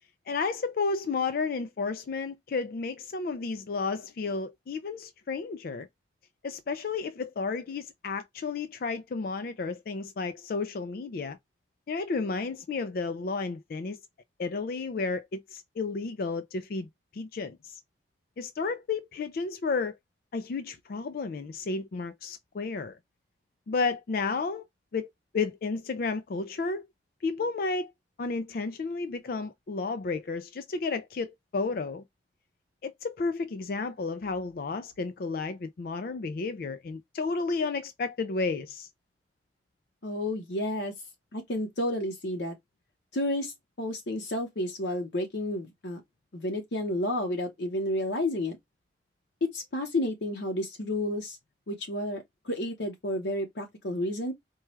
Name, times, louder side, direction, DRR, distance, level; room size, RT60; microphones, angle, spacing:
voice 1, 0.3-5.9 6.4-11.4 11.9-14.0 14.4-17.8 18.4-20.0 20.3-23.0 23.7-24.6 24.9-25.1 25.3-26.9 27.2-27.9 28.2-32.0 32.8-38.9, left 4 dB, 55° left, 0.4 m, -32 dB
voice 2, 40.0-40.9 41.3-42.5 43.1-46.0 46.3-48.6 49.4-51.4 51.7-54.3, left 1 dB, 80° left, 0.9 m, -31 dB
4.6 x 2.3 x 3.0 m
head